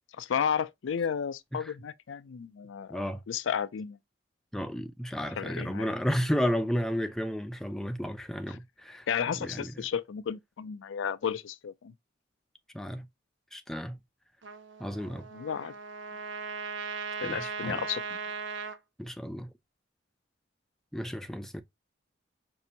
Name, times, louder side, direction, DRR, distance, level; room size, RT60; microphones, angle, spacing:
voice 1, 0.1-4.0 5.4-5.9 8.5-8.6 9.1-11.9 15.3-15.7 17.2-18.0, left 7 dB, 90° left, 0.4 m, -33 dB
voice 2, 2.9-3.2 4.5-9.1 9.4-9.7 12.7-13.1 13.5-14.0 14.8-15.3 17.2-17.8 19.0-19.5 20.9-21.6, equal, ahead, 0.3 m, -32 dB
Trumpet, 14.4-18.8, right 5 dB, 80° right, 0.7 m, -38 dB
5.4 x 2.5 x 2.7 m
head